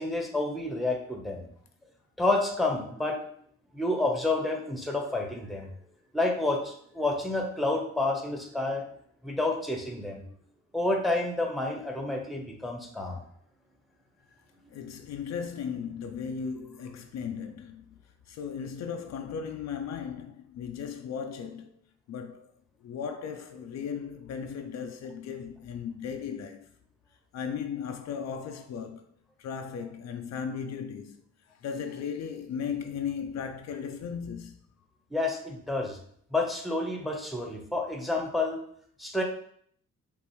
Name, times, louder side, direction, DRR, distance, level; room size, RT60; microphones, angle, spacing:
voice 1, 0.0-1.5 2.2-3.2 3.7-5.7 6.1-8.8 9.2-10.3 10.7-13.2 35.1-36.0 36.3-38.6 39.0-39.2, left 2 dB, ahead, 0.9 m, -29 dB
voice 2, 14.7-18.0 18.3-21.7 22.1-22.5 22.8-26.7 27.3-29.1 29.4-31.2 31.6-34.6, left 7 dB, 60° left, 0.5 m, -36 dB
5.2 x 2.6 x 3.1 m
cardioid pair, 90°, 30 cm